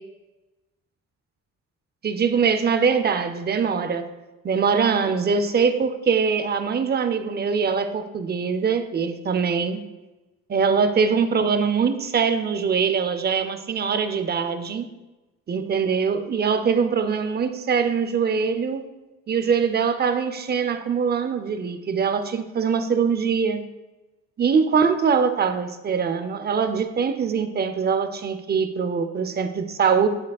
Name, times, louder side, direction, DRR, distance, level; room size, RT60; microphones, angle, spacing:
voice 1, 2.0-4.1 4.4-9.8 10.5-14.9 15.5-18.9 19.3-23.6 24.4-30.1, right 6 dB, 35° right, 9 dB, 0.6 m, -23 dB
7.3 x 6.0 x 2.3 m, 1.1 s
cardioid pair, 90°, 30 cm